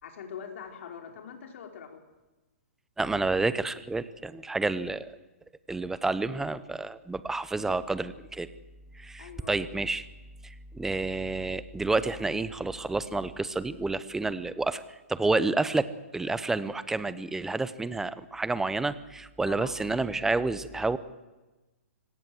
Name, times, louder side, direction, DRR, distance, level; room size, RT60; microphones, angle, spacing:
voice 1, 0.0-2.0 9.2-9.5 19.4-19.7, left 7 dB, 55° left, 4 dB, 4.8 m, -43 dB
voice 2, 3.0-5.1 5.7-8.5 8.9-10.1 10.4-21.0, right 3 dB, 5° right, 15 dB, 0.8 m, -29 dB
25.5 x 17.5 x 8.0 m, 1.1 s
hypercardioid pair, 145°, 8 cm